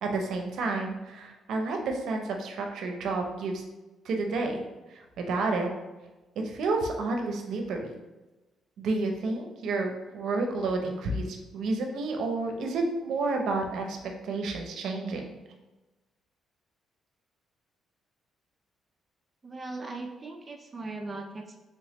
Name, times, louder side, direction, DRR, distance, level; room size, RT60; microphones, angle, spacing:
voice 1, 0.0-3.6 4.0-4.7 4.9-5.7 6.4-8.0 8.8-14.0 14.2-15.3, right 3 dB, 75° right, 3 dB, 0.6 m, -30 dB
voice 2, 19.4-21.6, right 2 dB, 30° right, 3 dB, 0.3 m, -39 dB
3.4 x 3.0 x 2.9 m, 1.1 s
cardioid pair, 90°, 0 cm